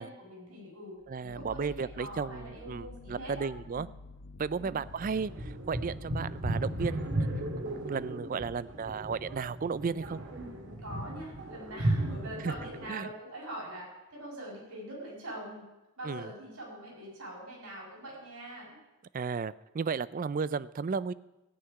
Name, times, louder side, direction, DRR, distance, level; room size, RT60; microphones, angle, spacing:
voice 1, 0.0-3.9 4.5-4.8 10.8-15.7 16.0-18.8, right 1 dB, 80° right, -4 dB, 6.4 m, -44 dB
sound 1, 1.0-6.5, left 2 dB, 60° left, 1.1 m, -50 dB
voice 2, 1.1-3.9 4.4-7.3 7.6-10.2 12.4-12.5 12.9-13.1 16.0-16.3 19.1-21.1, right 5 dB, 40° right, 18 dB, 0.3 m, -34 dB
sound 2, 4.8-12.9, right 1 dB, 55° right, 1.8 m, -35 dB
15.5 x 5.8 x 9.7 m, 1.0 s
head